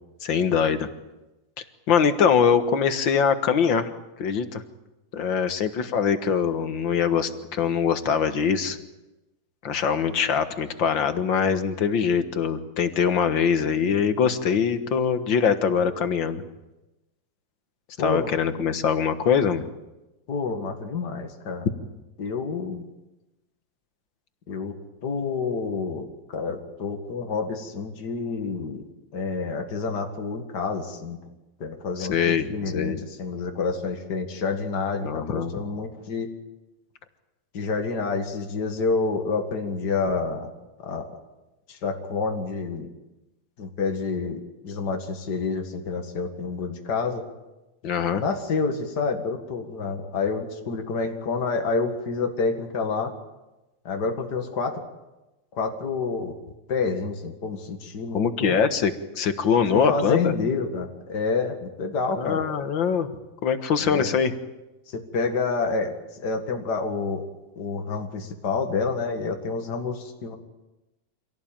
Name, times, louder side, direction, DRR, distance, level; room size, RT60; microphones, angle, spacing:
voice 1, 0.2-0.9 1.9-3.9 4.2-4.6 5.1-8.8 9.6-16.4 18.0-19.6 32.0-32.5 32.7-33.0 35.0-35.5 47.8-48.2 58.1-60.3 62.2-63.1 63.4-64.3, left 7 dB, 85° left, 10 dB, 2.2 m, -23 dB
voice 2, 18.0-18.3 20.3-21.7 22.2-22.9 24.5-24.8 25.0-28.9 29.1-31.2 31.6-36.3 37.5-40.5 40.8-41.1 41.7-42.9 43.6-47.2 48.2-53.2 53.8-54.8 55.5-56.4 56.7-58.5 59.7-62.4 63.8-64.2 64.9-65.9 66.2-67.3 67.6-70.4, left 4 dB, 60° left, 4 dB, 2.5 m, -28 dB
26.0 x 17.0 x 8.9 m, 1.0 s
omnidirectional pair, 2.0 m